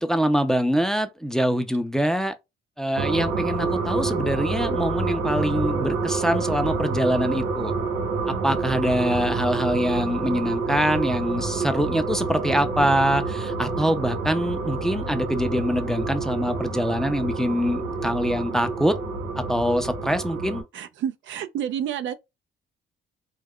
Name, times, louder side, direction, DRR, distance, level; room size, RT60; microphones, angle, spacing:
voice 1, 0.0-2.3 2.8-7.7 8.3-19.0 19.4-20.6, equal, ahead, 0.4 m, -24 dB
sound 1, 3.0-20.6, right 4 dB, 90° right, 1.0 m, -28 dB
voice 2, 20.7-22.1, right 9 dB, 70° right, 0.5 m, -29 dB
2.3 x 2.2 x 3.5 m
cardioid pair, 90°, 20 cm